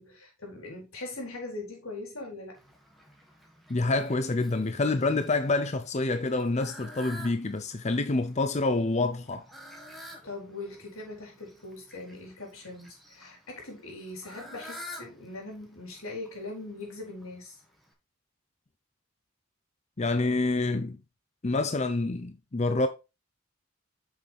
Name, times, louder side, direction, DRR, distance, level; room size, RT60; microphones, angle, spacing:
voice 1, 0.0-2.6 9.9-17.5, left 2 dB, 90° left, 4.2 m, -41 dB
Fowl, 2.5-17.9, equal, ahead, 1.9 m, -50 dB
voice 2, 3.7-9.5 20.0-21.0 21.4-22.9, left 2 dB, 35° left, 0.6 m, -27 dB
8.4 x 6.4 x 3.5 m
head